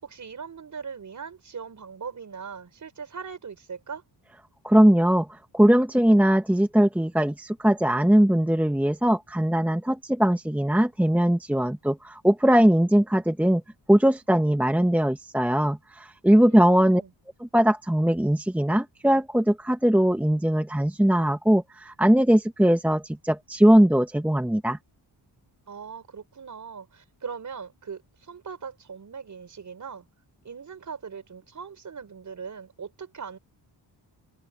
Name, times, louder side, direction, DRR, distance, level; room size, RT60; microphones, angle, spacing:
voice 1, 0.0-4.0 16.5-17.1 25.7-30.1 30.4-33.4, right 6 dB, 40° right, 5.6 m, -40 dB
voice 2, 4.6-13.6 13.9-17.0 17.5-24.8, equal, 5° right, 1.2 m, -20 dB
open air
wide cardioid pair, 170°, 44 cm